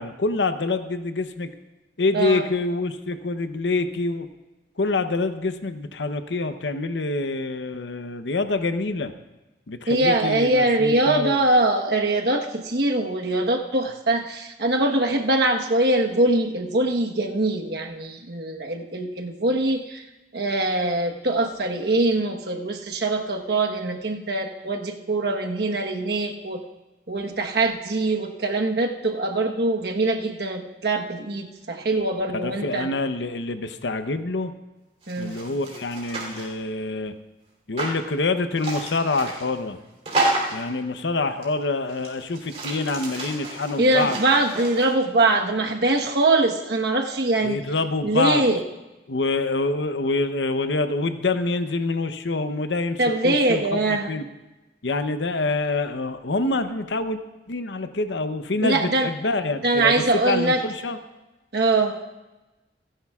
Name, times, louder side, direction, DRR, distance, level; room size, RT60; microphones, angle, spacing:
voice 1, 0.0-1.5 2.0-4.3 4.8-9.1 9.7-11.4 32.3-34.5 35.2-37.1 37.7-39.8 40.5-44.2 47.4-48.4 49.1-54.2 54.8-57.2 57.5-61.0, left 3 dB, 90° left, 9 dB, 0.8 m, -26 dB
voice 2, 9.9-20.0 20.3-26.6 27.1-32.9 35.1-35.4 43.8-47.6 48.0-48.6 53.0-54.1 58.6-59.1 59.6-60.6 61.5-62.0, right 2 dB, 65° right, 2 dB, 1.2 m, -23 dB
sound 1, 35.0-36.5 37.8-38.0 38.6-39.5 40.0-40.7 41.4-41.5 41.9-44.9, right 2 dB, 35° right, 3.2 m, -30 dB
27.5 x 10.0 x 2.4 m, 1.1 s
head